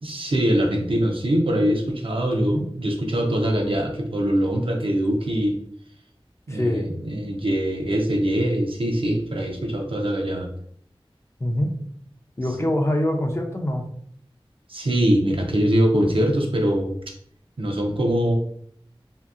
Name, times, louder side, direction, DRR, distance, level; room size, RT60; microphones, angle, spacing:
voice 1, 0.0-5.6 6.5-10.5 14.7-16.9 17.6-18.4, equal, 65° right, 1 dB, 0.6 m, -23 dB
voice 2, 6.5-6.9 11.4-11.7 12.4-13.9, left 1 dB, 30° left, 2 dB, 0.4 m, -24 dB
2.7 x 2.5 x 2.4 m, 0.65 s
wide cardioid pair, 50°, 10 cm